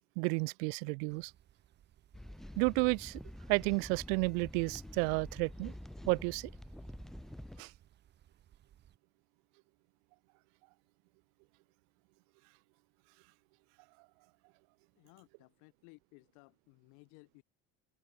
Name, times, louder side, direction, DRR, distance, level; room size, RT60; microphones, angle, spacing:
voice 1, 0.2-1.3 2.6-3.2 3.5-5.7 6.1-6.5 7.6-7.7, right 40 dB or more, 90° right, 0.5 m, -31 dB
sound 1, 1.1-9.0, right 11 dB, 35° right, 4.0 m, -63 dB
sound 2, 2.1-7.6, equal, ahead, 0.9 m, -48 dB
voice 2, 15.0-17.4, left 36 dB, 75° left, 1.9 m, -60 dB
open air
cardioid pair, 165°, 31 cm